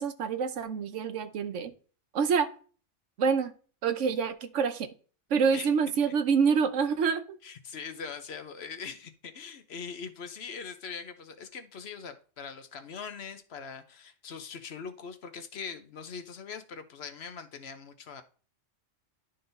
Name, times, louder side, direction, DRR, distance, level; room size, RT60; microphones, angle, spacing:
voice 1, 0.0-1.7 2.1-2.5 3.2-3.5 3.8-4.9 5.3-7.4, right 6 dB, 90° right, 1.1 m, -26 dB
voice 2, 7.4-18.2, left 6 dB, 60° left, 1.0 m, -42 dB
11.0 x 3.9 x 3.9 m
omnidirectional pair, 1.2 m